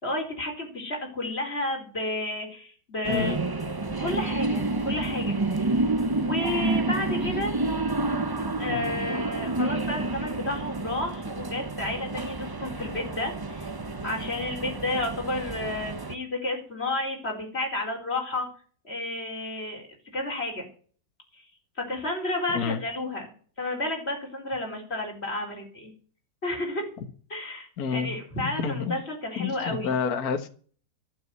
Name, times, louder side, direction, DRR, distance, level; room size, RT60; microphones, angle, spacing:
voice 1, 0.0-3.4 4.0-5.4 6.2-7.6 8.6-13.6 14.0-18.5 18.8-19.9 20.1-20.7 21.8-23.3 23.6-25.9 26.4-26.8 27.3-29.9, left 2 dB, 35° left, 1 dB, 4.6 m, -31 dB
sound 1, 3.0-16.1, right 2 dB, 35° right, 0.4 m, -29 dB
voice 2, 3.1-3.4 8.7-8.9 22.5-22.8 27.8-28.1 28.6-28.9 29.4-30.5, left 6 dB, 55° left, 7 dB, 1.7 m, -29 dB
12.0 x 7.4 x 9.5 m, 0.44 s
omnidirectional pair, 1.9 m